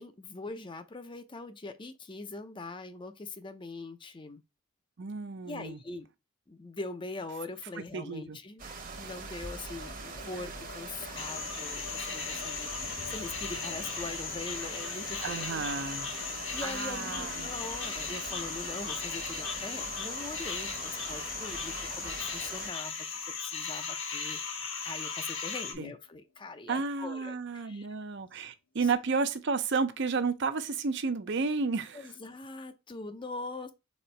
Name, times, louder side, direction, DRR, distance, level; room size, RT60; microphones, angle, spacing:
voice 1, 0.0-4.4 5.5-6.1 6.5-8.6 9.0-15.7 16.1-24.4 24.8-27.9 31.9-33.7, left 3 dB, 25° left, 0.5 m, -42 dB
voice 2, 5.0-5.8 7.9-8.4 15.2-16.1 16.6-17.5 25.8-25.9 26.7-32.1, right 4 dB, 60° right, 0.6 m, -32 dB
sound 1, 8.6-22.7, right 4 dB, 45° right, 1.1 m, -43 dB
sound 2, 9.7-25.8 26.0-26.1 26.4-27.1, left 5 dB, 80° left, 0.6 m, -51 dB
sound 3, 11.2-25.7, left 5 dB, 60° left, 1.1 m, -37 dB
4.3 x 3.8 x 3.2 m
head